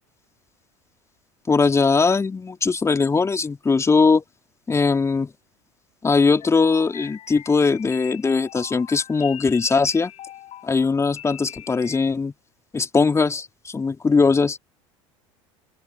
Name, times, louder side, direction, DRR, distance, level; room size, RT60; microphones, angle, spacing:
voice 1, 1.5-4.2 4.7-5.3 6.0-10.1 10.6-12.3 12.7-14.6, left 4 dB, 15° left, 3.5 m, -20 dB
sound 1, 6.4-12.1, left 12 dB, 40° left, 7.7 m, -41 dB
open air
figure-of-eight pair, 70°, 16 cm